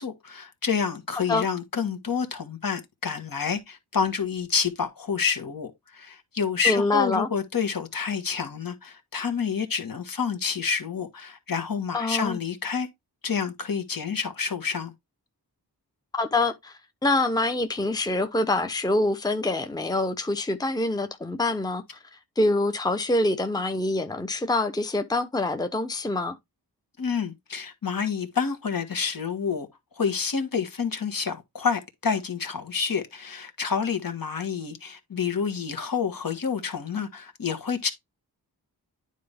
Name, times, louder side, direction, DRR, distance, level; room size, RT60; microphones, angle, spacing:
voice 1, 0.0-12.9 13.2-14.9 27.0-29.7 29.9-37.9, left 6 dB, 60° left, 1.7 m, -28 dB
voice 2, 6.6-7.3 11.9-12.4 16.1-22.0 22.4-26.4, left 2 dB, 10° left, 0.9 m, -25 dB
9.3 x 4.3 x 3.5 m
cardioid pair, 55°, 40 cm